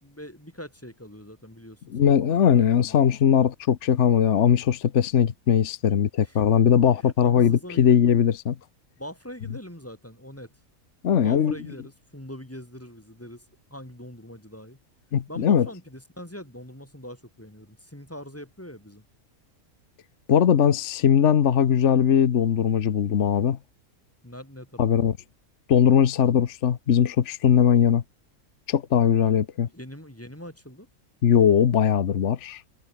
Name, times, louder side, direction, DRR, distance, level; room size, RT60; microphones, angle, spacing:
voice 1, 0.0-2.1 2.6-3.4 6.2-6.4 7.0-8.0 9.0-10.6 11.1-13.4 13.7-14.8 15.3-19.0 24.2-24.9 29.7-30.9, equal, 10° left, 3.2 m, -42 dB
voice 2, 1.9-8.6 11.0-11.5 15.1-15.7 20.3-23.6 24.8-25.1 25.7-28.0 28.7-29.7 31.2-32.6, left 8 dB, 55° left, 1.3 m, -20 dB
omnidirectional pair, 1.5 m